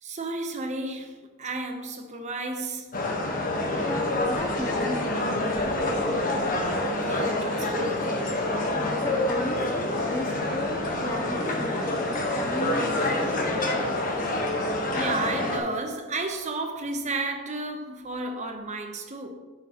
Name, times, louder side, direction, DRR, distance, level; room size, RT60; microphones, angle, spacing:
voice 1, 0.0-3.0 6.8-8.2 14.9-19.3, right 2 dB, 30° right, 0.8 m, -32 dB
sound 1, 2.9-15.6, left 1 dB, 40° left, 1.2 m, -27 dB
voice 2, 3.8-6.1 9.0-13.7, left 1 dB, 15° left, 0.4 m, -36 dB
9.7 x 7.1 x 2.9 m
head